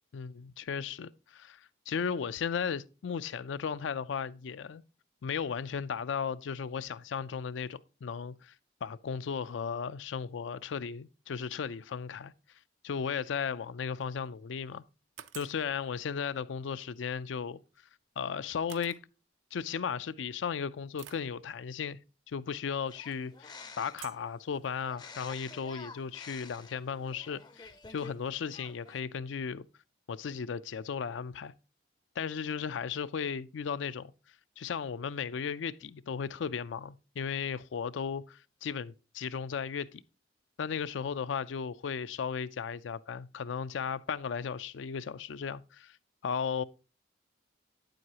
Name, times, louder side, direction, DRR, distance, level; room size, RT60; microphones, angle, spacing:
voice 1, 0.1-4.8 5.2-8.5 8.8-12.3 12.8-14.8 15.3-17.6 18.2-19.0 19.5-22.0 22.3-29.7 30.1-31.5 32.2-34.1 34.6-40.0 40.6-46.0 46.2-46.6, left 6 dB, 80° left, 0.4 m, -35 dB
sound 1, 14.0-14.4 15.2-15.6 17.7-17.8 18.7-19.0 19.9-20.0 21.0-21.3 22.9-23.2 24.0-24.3, right 11 dB, 90° right, 0.5 m, -49 dB
sound 2, 22.9-24.1 24.9-28.2 28.4-29.0, left 4 dB, 20° left, 0.4 m, -49 dB
8.7 x 7.8 x 2.8 m
head